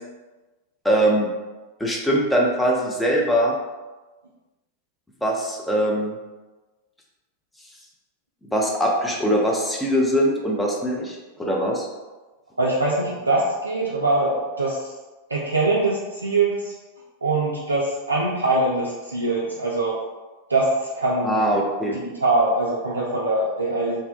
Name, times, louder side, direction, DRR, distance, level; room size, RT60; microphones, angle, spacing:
voice 1, 0.8-1.3 1.8-3.6 5.2-6.1 8.5-11.9 21.2-22.0, equal, 5° left, -2 dB, 0.5 m, -22 dB
voice 2, 12.6-14.9 15.3-16.7 17.2-20.0 20.5-21.6 21.9-24.0, right 2 dB, 80° right, -5 dB, 0.3 m, -23 dB
2.6 x 2.1 x 2.3 m, 1.2 s
figure-of-eight pair, 90°, 0 cm